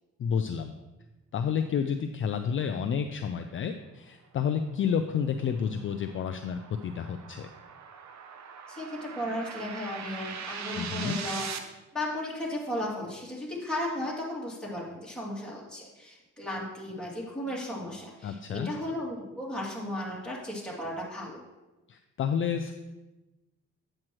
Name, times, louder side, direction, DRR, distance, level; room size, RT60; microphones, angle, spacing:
voice 1, 0.2-0.7 1.3-7.5 10.7-11.2 18.2-18.7 21.9-22.7, left 7 dB, 45° left, 7 dB, 0.4 m, -30 dB
sound 1, 4.7-11.6, right 6 dB, 65° right, 0.8 m, -41 dB
voice 2, 8.7-11.5 11.9-21.4, left 1 dB, 5° left, -5 dB, 2.7 m, -35 dB
8.6 x 7.6 x 3.1 m, 1.1 s
cardioid pair, 90°, 30 cm